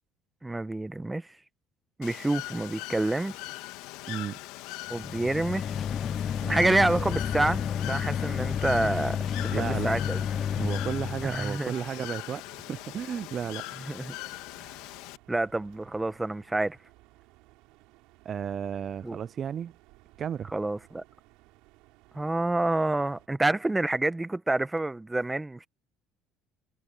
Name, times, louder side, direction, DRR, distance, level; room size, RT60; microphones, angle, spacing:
voice 1, 0.4-1.3 2.0-3.3 4.9-5.7 6.5-10.2 11.2-11.7 13.9-14.2 15.3-16.8 19.0-19.2 20.5-21.0 22.1-25.7, right 2 dB, 10° right, 1.0 m, -28 dB
Bird / Water, 2.0-15.2, left 18 dB, 80° left, 2.3 m, -41 dB
voice 2, 4.1-4.4 6.4-7.1 9.5-10.0 10.6-13.7 18.3-19.7 20.2-20.5, right 8 dB, 45° right, 0.3 m, -33 dB
sound 1, 4.9-11.5, left 8 dB, 45° left, 0.5 m, -31 dB
sound 2, 7.0-23.3, right 21 dB, 80° right, 5.4 m, -58 dB
supercardioid pair, 95°, 0 cm